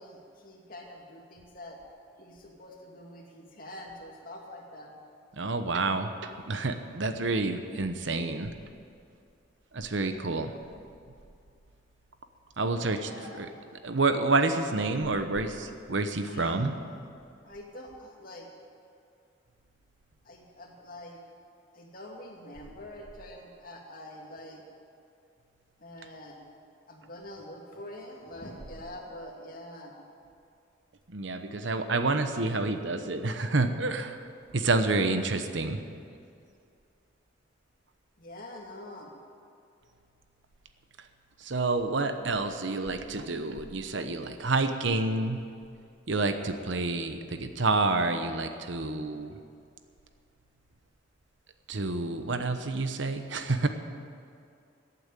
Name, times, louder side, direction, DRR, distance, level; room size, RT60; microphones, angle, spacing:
voice 1, 0.0-1.8 2.2-4.9 12.7-13.5 16.3-16.7 17.4-18.5 20.2-21.2 21.7-24.6 25.8-26.4 26.9-29.9 38.2-39.1, left 1 dB, 45° left, 0 dB, 2.3 m, -45 dB
voice 2, 5.4-6.1 6.5-8.5 9.7-10.5 12.6-13.1 13.4-13.5 13.8-16.7 31.1-34.2 34.5-35.8 41.4-45.4 46.1-49.3 51.7-53.7, right 3 dB, 70° right, 8 dB, 1.0 m, -28 dB
15.0 x 8.8 x 9.0 m, 2.4 s
head